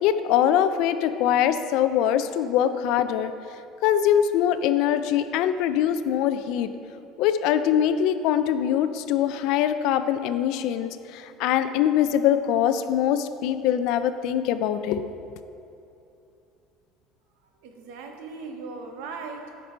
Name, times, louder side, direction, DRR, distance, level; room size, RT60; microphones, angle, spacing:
voice 1, 0.0-3.3 3.8-6.7 7.2-15.0, left 10 dB, 65° left, 11 dB, 0.4 m, -23 dB
voice 2, 17.6-19.6, right 4 dB, 85° right, 4 dB, 0.9 m, -38 dB
9.3 x 5.3 x 4.4 m, 2.8 s
cardioid pair, 155°, 0 cm